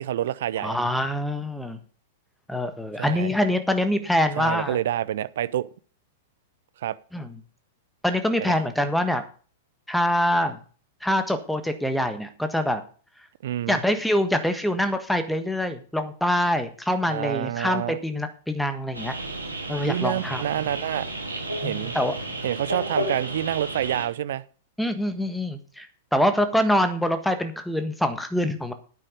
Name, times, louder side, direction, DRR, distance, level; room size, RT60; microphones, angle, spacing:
voice 1, 0.0-0.8 3.0-3.3 4.4-5.7 6.8-7.0 8.4-8.6 13.4-13.8 17.1-18.0 19.8-21.1 21.6-21.9 22.4-24.4, right 12 dB, 55° right, 0.6 m, -28 dB
voice 2, 0.6-1.8 2.5-4.8 7.1-7.3 8.0-9.2 9.9-10.6 11.0-12.8 13.7-19.1 19.7-20.4 21.6-22.1 24.8-25.9 26.1-28.7, left 1 dB, ahead, 1.4 m, -25 dB
sound 1, 18.9-24.0, right 1 dB, 85° right, 3.1 m, -32 dB
10.5 x 9.1 x 5.2 m
figure-of-eight pair, 100°, 0 cm